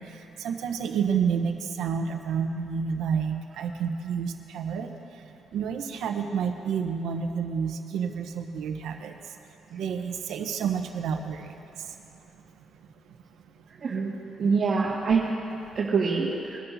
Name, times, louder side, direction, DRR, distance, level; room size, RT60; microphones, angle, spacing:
voice 1, 0.0-4.9 5.5-9.1 9.7-11.6, right 6 dB, 80° right, 5 dB, 1.0 m, -29 dB
voice 2, 13.8-14.1 14.4-15.2 15.8-16.6, right 5 dB, 50° right, -7 dB, 1.9 m, -25 dB
22.5 x 12.0 x 2.8 m, 2.9 s
cardioid pair, 90°, 0 cm